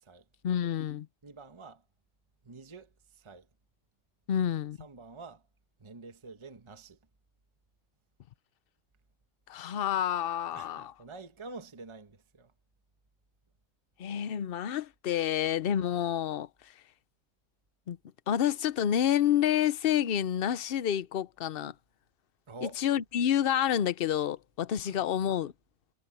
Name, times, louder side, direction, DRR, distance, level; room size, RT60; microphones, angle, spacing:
voice 1, 0.4-1.1 4.3-4.8 9.5-10.9 14.0-16.5 17.9-18.0 18.3-21.7 22.6-25.5, left 10 dB, 50° left, 0.7 m, -28 dB
voice 2, 1.2-1.8 2.4-3.5 4.8-5.4 5.8-7.0 10.5-12.5 22.5-22.8 24.8-25.1, right 3 dB, 20° right, 1.2 m, -47 dB
omnidirectional pair, 1.5 m